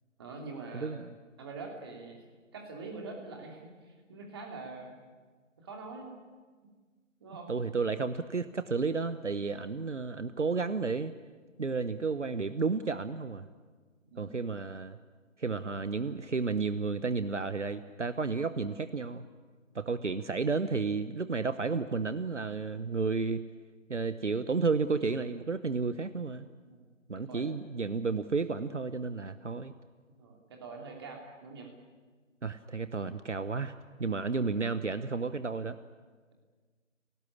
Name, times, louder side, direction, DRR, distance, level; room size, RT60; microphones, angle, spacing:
voice 1, 0.2-1.0 1.4-2.2 2.5-4.9 5.6-6.1 7.2-7.5 14.0-14.5 26.7-26.8 27.2-27.5 30.2-31.7, right 3 dB, 20° right, 1 dB, 2.8 m, -44 dB
voice 2, 0.7-1.0 7.5-11.1 11.6-13.5 14.2-15.0 15.4-19.2 19.7-23.4 23.9-26.5 27.1-29.7 32.4-33.7 34.0-35.8, right 4 dB, 65° right, 13 dB, 1.1 m, -32 dB
27.5 x 18.0 x 9.8 m, 1.5 s
figure-of-eight pair, 155°, 38 cm